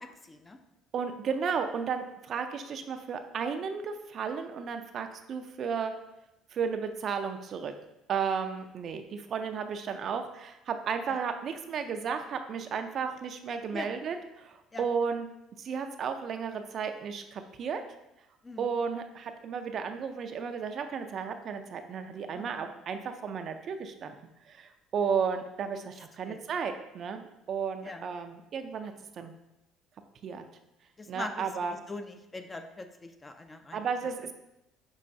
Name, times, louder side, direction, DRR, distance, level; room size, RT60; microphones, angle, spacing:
voice 1, 0.2-0.6 11.1-11.2 13.7-13.9 14.7-14.8 18.4-18.7 22.3-22.6 26.3-26.4 27.8-28.0 31.0-33.8, left 2 dB, 20° left, 7 dB, 0.4 m, -42 dB
voice 2, 0.9-5.9 6.5-7.7 8.1-15.3 15.6-17.8 18.6-24.1 24.4-27.2 27.5-29.3 30.2-30.4 31.1-31.8 33.7-34.3, right 6 dB, 50° right, 7 dB, 0.4 m, -33 dB
5.4 x 3.0 x 2.6 m, 0.89 s
supercardioid pair, 95°, 0 cm